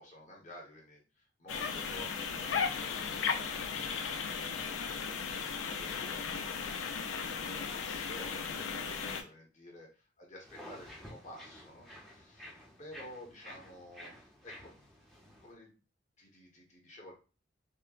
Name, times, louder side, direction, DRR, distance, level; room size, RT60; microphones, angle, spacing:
voice 1, 0.0-3.6 5.6-6.2 7.1-12.5 12.8-14.7 15.4-15.8 16.2-17.1, left 1 dB, 35° left, -1 dB, 1.3 m, -52 dB
sound 1, 1.5-9.2, left 6 dB, 80° left, 0.5 m, -36 dB
sound 2, 10.4-15.5, equal, ahead, 0.8 m, -52 dB
5.3 x 2.2 x 2.4 m, 0.33 s
head